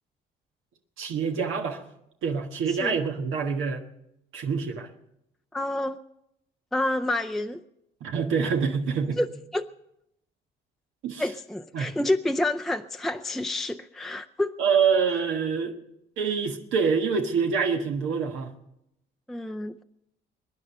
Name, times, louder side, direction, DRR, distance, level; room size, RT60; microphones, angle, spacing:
voice 1, 1.0-1.8 2.2-3.8 4.3-4.9 8.0-9.2 11.0-11.2 11.7-11.9 14.6-15.7 16.2-18.5, right 6 dB, 85° right, 3 dB, 1.5 m, -26 dB
voice 2, 5.5-6.0 6.7-7.6 9.2-9.3 9.5-9.6 11.2-14.5 19.3-19.8, left 1 dB, ahead, 6 dB, 0.5 m, -28 dB
22.5 x 9.9 x 5.6 m, 0.83 s
cardioid pair, 90°, 20 cm